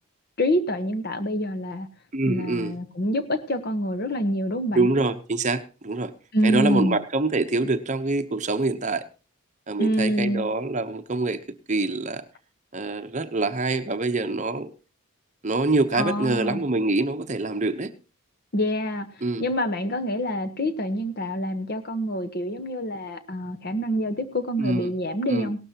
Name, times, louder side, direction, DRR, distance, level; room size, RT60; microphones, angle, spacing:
voice 1, 0.4-1.9 2.3-4.9 6.3-7.0 9.8-10.5 15.9-16.6 18.5-19.1 19.4-25.6, equal, 45° left, 10 dB, 1.0 m, -26 dB
voice 2, 2.1-2.8 4.7-6.1 6.4-9.0 9.7-11.4 11.7-12.2 12.7-14.7 15.4-17.9 19.2-19.5 24.6-24.9 25.3-25.5, right 2 dB, 35° right, 9 dB, 0.8 m, -25 dB
17.5 x 12.5 x 2.9 m, 0.33 s
head